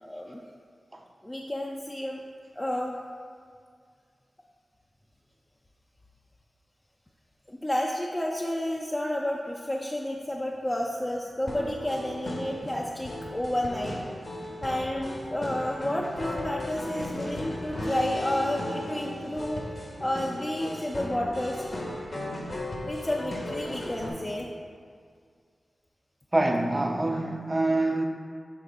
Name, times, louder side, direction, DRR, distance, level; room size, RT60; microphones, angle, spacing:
voice 1, 0.0-0.4 1.2-2.2 2.5-3.0 7.5-14.0 14.6-19.6 20.0-21.6 22.8-24.5, left 1 dB, 20° left, -2 dB, 0.5 m, -31 dB
sound 1, 11.5-24.1, left 1 dB, 50° left, 1.0 m, -36 dB
voice 2, 26.3-28.1, right 2 dB, 25° right, 3 dB, 0.7 m, -25 dB
7.1 x 3.3 x 4.9 m, 2.1 s
wide cardioid pair, 65°, 0 cm